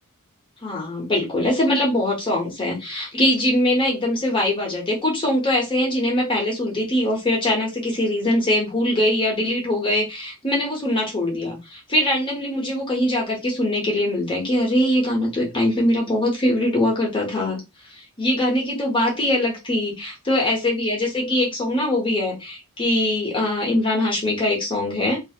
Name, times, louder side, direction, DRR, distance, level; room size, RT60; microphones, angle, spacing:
voice 1, 0.6-17.6 17.9-25.2, left 1 dB, 20° left, -2 dB, 0.8 m, -22 dB
2.6 x 2.4 x 2.8 m, 0.23 s
head